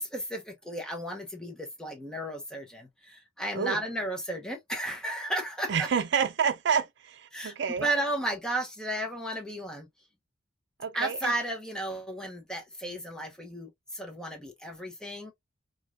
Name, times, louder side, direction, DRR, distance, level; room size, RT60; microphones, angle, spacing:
voice 1, 0.0-5.9 7.3-9.9 10.9-15.3, right 1 dB, 5° left, 0.9 m, -34 dB
voice 2, 5.7-7.9 10.8-11.3, right 6 dB, 65° right, 0.5 m, -28 dB
4.7 x 2.4 x 2.5 m
head